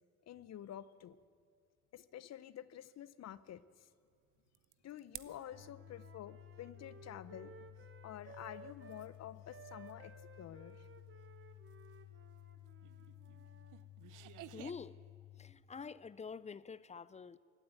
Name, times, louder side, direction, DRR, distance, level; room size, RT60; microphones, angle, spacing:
voice 1, 0.3-1.2 1.9-3.9 4.8-7.5 8.0-10.9, left 11 dB, 60° left, 0.7 m, -50 dB
sound 1, 4.1-5.4 5.7-14.7, right 15 dB, 85° right, 0.7 m, -57 dB
Wind instrument woodwind instrument, 5.2-9.1 9.5-13.8, right 5 dB, 40° right, 1.1 m, -58 dB
sound 2, 5.5-15.5, left 14 dB, 85° left, 3.3 m, -56 dB
voice 2, 14.5-15.0 15.4-17.4, left 5 dB, 25° left, 0.4 m, -47 dB
16.5 x 9.2 x 9.2 m
cardioid pair, 90°, 30 cm